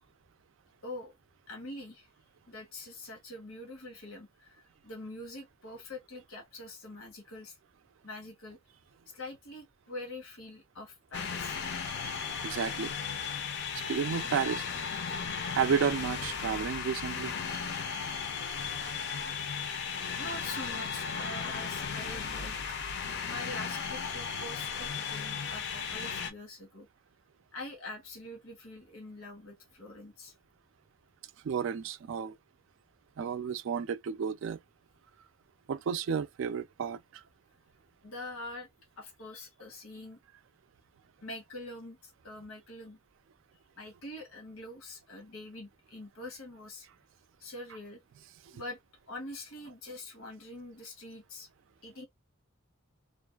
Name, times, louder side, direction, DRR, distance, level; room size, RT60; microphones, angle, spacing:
voice 1, 0.8-1.1 1.5-2.1 2.5-7.6 8.0-8.6 9.1-11.6 18.9-19.4 19.6-23.0 23.2-26.9 27.5-30.3 38.0-38.7 39.0-40.2 41.2-43.0 43.8-46.9 47.4-48.0 48.5-48.8 49.1-51.5 51.8-52.1, left 2 dB, 80° left, 1.1 m, -45 dB
sound 1, 11.1-26.3, left 6 dB, 55° left, 0.5 m, -36 dB
voice 2, 12.4-12.9 13.7-14.7 15.5-17.3 31.4-32.4 33.2-34.6 35.7-37.2, right 7 dB, 60° right, 0.3 m, -32 dB
2.5 x 2.3 x 2.3 m
head